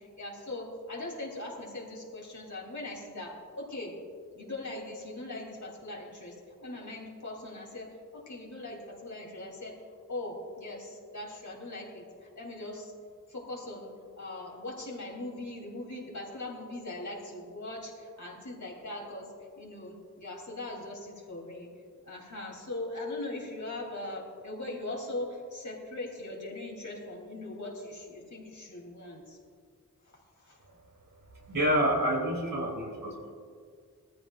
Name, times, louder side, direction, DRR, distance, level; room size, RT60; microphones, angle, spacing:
voice 1, 0.0-4.0 4.3-9.8 10.1-12.9 13.3-21.7 22.1-29.4 30.1-30.6, left 2 dB, 65° left, -2 dB, 3.3 m, -40 dB
voice 2, 31.5-33.3, equal, 85° right, -3 dB, 3.1 m, -28 dB
19.5 x 14.0 x 2.5 m, 2.1 s
wide cardioid pair, 65°, 32 cm